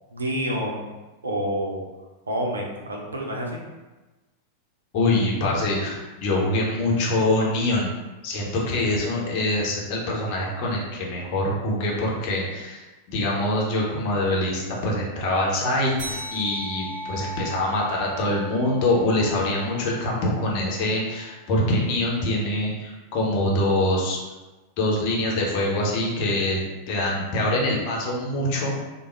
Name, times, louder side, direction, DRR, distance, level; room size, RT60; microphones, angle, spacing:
voice 1, 0.1-0.9 1.2-1.8 2.3-3.6, equal, 75° right, 0 dB, 0.6 m, -28 dB
voice 2, 4.9-7.9 8.2-12.8 13.1-24.2 24.8-28.8, left 1 dB, 45° left, -3 dB, 0.9 m, -24 dB
sound 1, 16.0-20.9, right 1 dB, 45° right, 1.2 m, -38 dB
3.4 x 2.2 x 3.3 m, 1.1 s
figure-of-eight pair, 90°, 0 cm